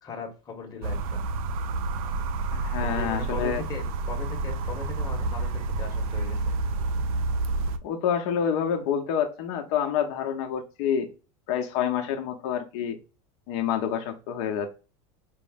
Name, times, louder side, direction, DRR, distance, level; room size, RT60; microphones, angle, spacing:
voice 1, 0.0-1.2 2.8-6.5, left 5 dB, 20° left, 1 dB, 1.2 m, -39 dB
sound 1, 0.8-7.8, right 3 dB, 85° right, 0.6 m, -29 dB
voice 2, 2.5-3.6 7.8-11.1 11.5-13.0 13.5-14.8, left 8 dB, 55° left, 5 dB, 0.9 m, -28 dB
5.1 x 2.1 x 3.5 m, 0.32 s
supercardioid pair, 155°, 18 cm